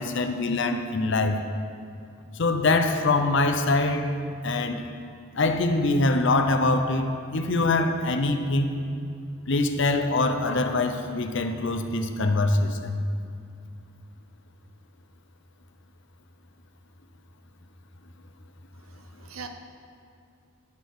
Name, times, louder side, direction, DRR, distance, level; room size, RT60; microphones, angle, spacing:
voice 1, 0.0-1.4 2.4-4.1 4.4-4.8 5.4-8.7 9.5-13.0, left 2 dB, 60° left, 6 dB, 0.7 m, -24 dB
voice 2, 18.8-19.5, right 6 dB, 90° right, 6 dB, 0.8 m, -42 dB
11.0 x 6.5 x 4.7 m, 2.4 s
head